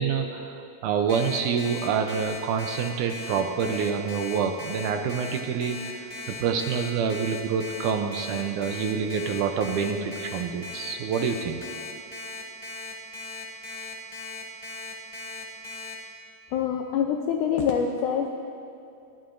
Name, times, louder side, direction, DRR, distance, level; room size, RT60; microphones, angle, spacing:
voice 1, 0.0-11.6, right 6 dB, 75° right, 5 dB, 1.9 m, -27 dB
Alarm, 1.1-15.9, left 3 dB, 25° left, 0.8 m, -38 dB
voice 2, 16.5-18.3, left 7 dB, 80° left, 3 dB, 1.9 m, -25 dB
29.0 x 11.5 x 2.6 m, 2.5 s
omnidirectional pair, 4.1 m